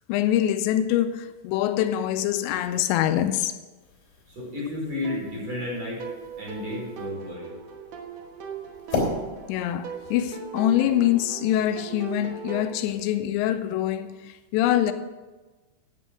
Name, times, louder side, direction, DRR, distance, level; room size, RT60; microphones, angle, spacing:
voice 1, 0.1-3.6 9.5-14.9, left 12 dB, 85° left, 2.8 m, -24 dB
sound 1, 3.8-11.0, left 3 dB, 55° left, 4.8 m, -37 dB
voice 2, 4.3-6.0 6.4-7.5, left 2 dB, 35° right, 5.7 m, -32 dB
sound 2, 5.0-12.7, right 6 dB, 75° right, 1.6 m, -39 dB
9.9 x 9.2 x 6.1 m
omnidirectional pair, 5.1 m